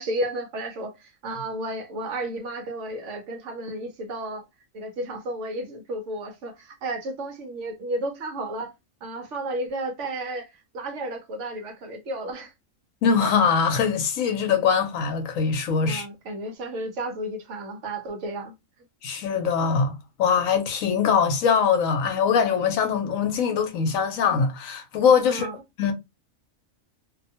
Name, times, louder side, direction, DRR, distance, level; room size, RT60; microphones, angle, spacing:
voice 1, 0.0-4.4 4.7-8.7 9.0-12.5 15.8-18.6 25.3-25.6, right 1 dB, 65° right, 0.9 m, -32 dB
voice 2, 13.0-16.1 19.0-25.5 25.8-25.9, left 6 dB, 75° left, 1.0 m, -22 dB
2.6 x 2.2 x 2.7 m
omnidirectional pair, 1.5 m